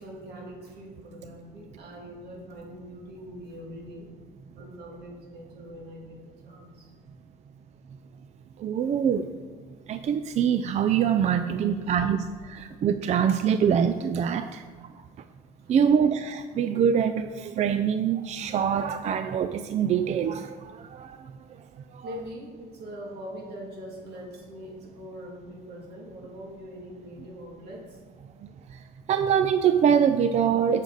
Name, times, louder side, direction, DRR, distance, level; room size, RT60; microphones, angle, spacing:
voice 1, 0.0-4.1 4.5-6.9 11.4-11.9 15.6-15.8 22.0-28.0, equal, 75° right, -1 dB, 2.3 m, -42 dB
voice 2, 8.6-9.3 9.9-14.6 15.7-21.2 21.9-22.1 28.4-28.5 29.1-30.8, right 8 dB, 40° right, 10 dB, 0.4 m, -24 dB
8.2 x 6.6 x 4.0 m, 1.5 s
cardioid pair, 110°, 17 cm